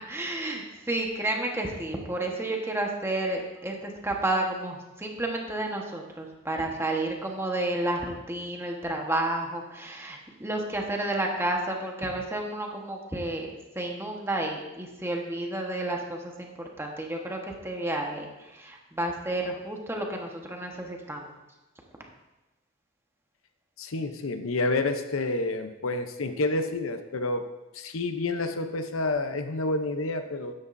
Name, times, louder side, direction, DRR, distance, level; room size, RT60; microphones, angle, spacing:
voice 1, 0.1-21.3, right 1 dB, 10° right, 0 dB, 1.2 m, -31 dB
voice 2, 23.8-27.5 27.7-30.5, left 2 dB, 75° left, 8 dB, 0.7 m, -29 dB
13.0 x 9.8 x 2.6 m, 1.0 s
head